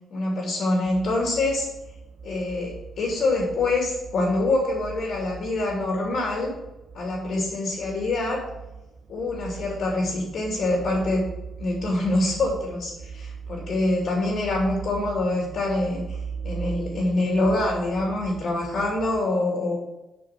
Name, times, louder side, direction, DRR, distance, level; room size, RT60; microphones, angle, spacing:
voice 1, 0.1-1.7 2.2-6.6 6.9-8.4 9.1-11.3 11.6-16.2 16.4-19.8, left 2 dB, 65° left, -1 dB, 2.5 m, -25 dB
sound 1, 0.9-19.2, right 6 dB, 55° right, 0.6 m, -40 dB
8.0 x 5.1 x 5.8 m, 0.97 s
cardioid pair, 115°, 0 cm